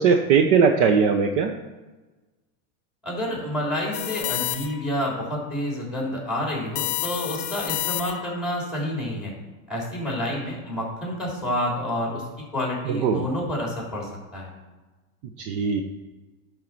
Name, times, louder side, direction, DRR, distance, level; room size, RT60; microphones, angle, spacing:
voice 1, 0.0-1.6 13.0-13.3 15.4-15.8, right 6 dB, 50° right, 5 dB, 0.8 m, -19 dB
voice 2, 3.0-9.3 9.7-12.2 12.5-14.5, left 1 dB, ahead, -3 dB, 3.4 m, -29 dB
sound 1, 3.9-5.0 6.8-8.4, left 15 dB, 65° left, 0.8 m, -30 dB
11.0 x 4.7 x 6.0 m, 1.2 s
supercardioid pair, 155°, 44 cm